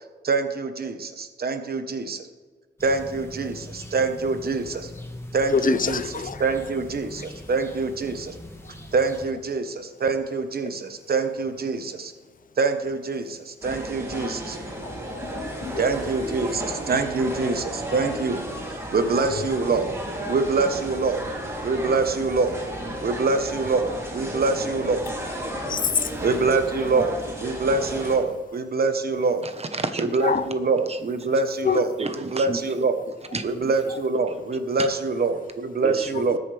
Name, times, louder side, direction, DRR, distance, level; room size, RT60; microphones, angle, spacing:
voice 1, 0.2-2.3 2.8-4.9 5.3-6.0 6.4-8.3 8.9-12.1 12.6-14.6 15.8-18.5 18.9-20.0 20.3-21.2 21.6-22.6 23.0-25.1 26.2-29.5 30.0-31.9 32.3-33.0 33.4-36.4, right 4 dB, 55° right, 8 dB, 1.2 m, -25 dB
sound 1, 2.8-9.3, left 1 dB, 15° left, 1.5 m, -41 dB
voice 2, 5.5-6.4 8.6-8.7 14.1-14.3 14.8-16.1 19.3-19.5 25.7-26.2 30.2-30.4 31.6-31.8, left 6 dB, 45° left, 14 dB, 0.5 m, -26 dB
sound 2, 13.6-28.2, right 1 dB, 15° right, 3.2 m, -33 dB
voice 3, 29.4-30.2 30.9-31.3 31.7-32.6 33.3-33.7 34.8-34.9 35.8-36.4, right 3 dB, 35° right, 8 dB, 1.2 m, -32 dB
20.0 x 8.3 x 3.4 m, 1.4 s
wide cardioid pair, 115°, 19 cm